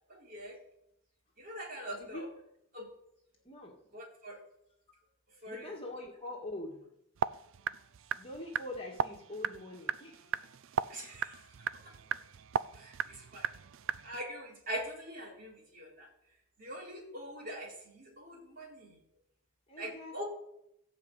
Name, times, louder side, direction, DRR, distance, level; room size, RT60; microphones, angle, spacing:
voice 1, 0.1-0.6 1.4-2.3 2.7-2.9 3.9-4.4 5.4-5.8 10.9-11.4 11.8-11.9 12.7-13.5 14.0-16.1 16.6-19.0 19.8-20.2, equal, 40° right, -4 dB, 4.0 m, -43 dB
voice 2, 2.0-2.3 3.5-3.7 5.5-6.8 8.2-10.4 19.7-20.2, left 1 dB, 25° left, -1 dB, 2.0 m, -43 dB
sound 1, 7.2-14.2, right 7 dB, 60° right, 0.4 m, -37 dB
15.0 x 5.2 x 8.3 m, 0.77 s
head